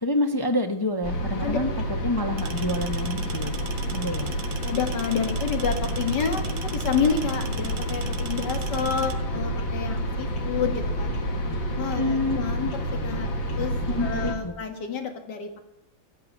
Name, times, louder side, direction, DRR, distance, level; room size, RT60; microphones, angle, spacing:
voice 1, 0.0-1.7 2.0-3.5 3.9-4.3 12.0-12.4 13.9-14.6, left 1 dB, 25° left, 5 dB, 0.4 m, -27 dB
sound 1, 1.0-14.3, equal, 75° left, 2.5 m, -29 dB
sound 2, 2.4-9.1, right 7 dB, 60° right, 1.6 m, -40 dB
voice 2, 4.6-11.1 11.8-13.7 14.0-15.6, left 6 dB, 60° left, 6 dB, 2.3 m, -29 dB
13.5 x 7.7 x 9.7 m, 0.92 s
omnidirectional pair, 2.1 m